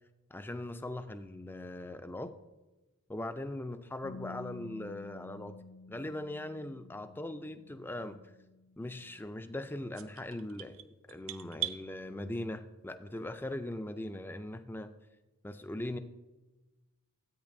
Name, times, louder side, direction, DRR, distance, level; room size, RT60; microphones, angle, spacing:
voice 1, 0.3-2.3 3.1-5.6 5.9-8.2 8.8-14.9 15.4-16.0, left 1 dB, 10° left, 9 dB, 0.4 m, -40 dB
Bass guitar, 4.0-10.3, left 4 dB, 90° left, 0.6 m, -52 dB
sound 1, 9.9-11.8, right 14 dB, 60° right, 0.5 m, -39 dB
13.5 x 8.8 x 2.6 m, 1.1 s
head